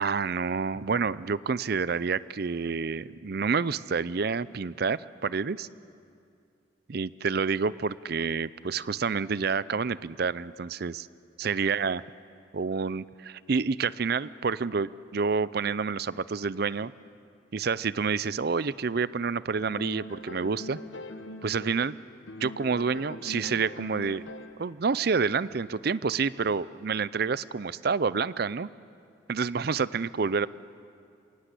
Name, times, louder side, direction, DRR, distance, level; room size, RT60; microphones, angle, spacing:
voice 1, 0.0-5.7 6.9-11.1 11.4-12.0 12.5-16.9 17.5-20.8 21.4-22.0 22.4-24.2 24.6-28.7 29.3-30.5, right 5 dB, 50° right, 18 dB, 0.5 m, -28 dB
sound 1, 19.6-21.9 22.3-24.7, left 1 dB, 70° left, 1.1 m, -42 dB
27.5 x 18.0 x 8.3 m, 2.4 s
head